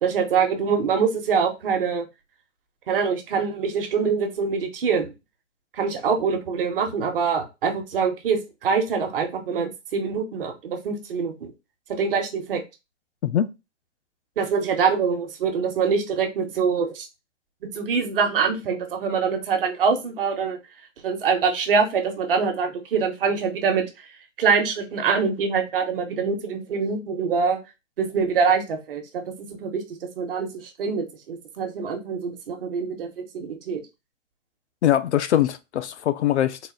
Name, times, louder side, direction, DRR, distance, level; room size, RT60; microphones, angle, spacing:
voice 1, 0.0-2.0 2.9-5.1 5.7-11.5 11.9-12.6 14.4-17.1 17.7-20.6 21.0-24.0 24.4-27.6 28.0-29.8 30.2-33.8, right 5 dB, 45° right, 1.0 m, -24 dB
voice 2, 13.2-13.5 34.8-36.6, left 11 dB, 65° left, 0.5 m, -22 dB
3.9 x 2.6 x 3.8 m
hypercardioid pair, 165°, 37 cm